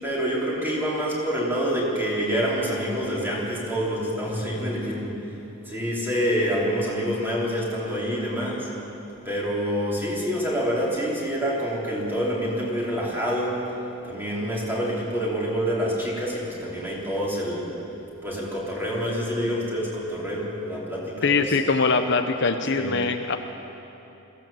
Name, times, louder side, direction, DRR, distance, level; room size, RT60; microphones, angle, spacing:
voice 1, 0.0-5.4 5.6-8.7 9.2-13.6 14.0-17.7 18.2-21.6 22.7-22.9, equal, 10° right, -5 dB, 4.2 m, -27 dB
voice 2, 21.2-23.4, left 4 dB, 55° left, 6 dB, 0.8 m, -22 dB
22.5 x 16.0 x 7.6 m, 3.0 s
head